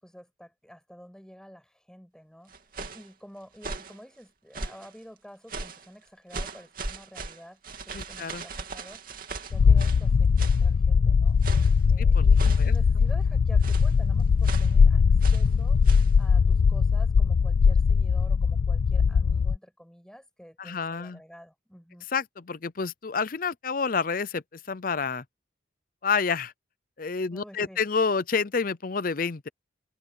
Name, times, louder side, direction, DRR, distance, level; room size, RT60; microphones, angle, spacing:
voice 1, 0.0-2.5 2.9-9.0 9.5-11.4 11.9-15.8 16.2-22.1 27.3-27.8, equal, 5° left, 6.8 m, -49 dB
sound 1, 2.5-3.1 3.6-4.0 4.5-4.9 5.5-5.9 6.3-10.1 10.4-10.7 11.4-11.8 12.4-12.8 13.6-14.0 14.4-14.8 15.2-15.5 15.8-16.1, right 3 dB, 45° right, 2.7 m, -38 dB
voice 2, 7.9-8.4 12.0-12.2 12.6-12.7 20.6-21.2 22.1-25.2 26.0-26.5 27.0-29.5, left 5 dB, 45° left, 0.6 m, -29 dB
sound 2, 9.5-19.6, left 5 dB, 85° left, 0.4 m, -20 dB
head